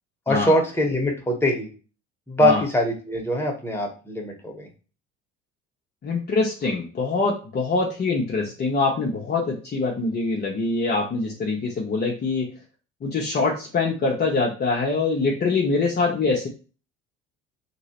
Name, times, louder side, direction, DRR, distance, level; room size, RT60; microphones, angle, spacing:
voice 1, 0.3-1.7 2.3-4.7, left 1 dB, 5° left, 0 dB, 1.2 m, -23 dB
voice 2, 6.0-12.5 13.0-16.5, left 3 dB, 30° left, -1 dB, 0.8 m, -24 dB
3.0 x 2.9 x 2.9 m, 0.35 s
figure-of-eight pair, 55°, 35 cm